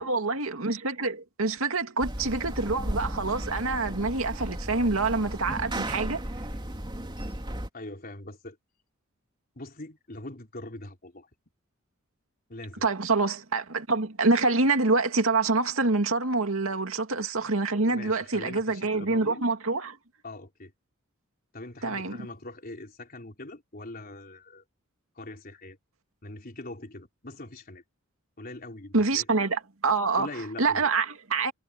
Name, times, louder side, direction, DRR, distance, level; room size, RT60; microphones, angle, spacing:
voice 1, 0.0-6.2 12.8-20.0 21.8-22.2 28.9-30.3 30.6-31.5, right 3 dB, 85° right, 2.3 m, -26 dB
sound 1, 2.0-7.7, right 1 dB, 25° right, 3.2 m, -34 dB
voice 2, 7.7-8.6 9.6-11.3 12.5-12.9 16.7-16.8 17.8-19.4 20.2-20.7 21.5-24.6 25.2-25.8 26.2-27.8 28.4-29.4 30.2-30.9, left 2 dB, 45° left, 4.1 m, -42 dB
head